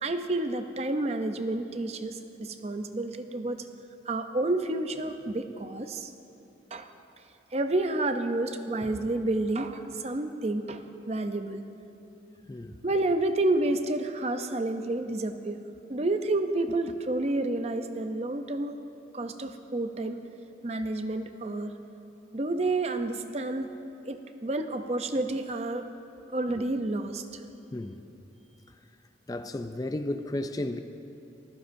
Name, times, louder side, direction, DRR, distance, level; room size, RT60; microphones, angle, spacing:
voice 1, 0.0-3.7 4.1-6.1 6.7-6.9 7.5-11.6 12.8-15.6 15.9-18.7 19.1-20.2 20.6-21.7 22.3-23.7 24.0-25.8 26.3-27.4, right 2 dB, 35° right, 8 dB, 0.6 m, -30 dB
voice 2, 27.7-28.0 29.3-30.8, left 1 dB, 20° left, 8 dB, 0.4 m, -33 dB
24.5 x 15.0 x 2.7 m, 2.9 s
head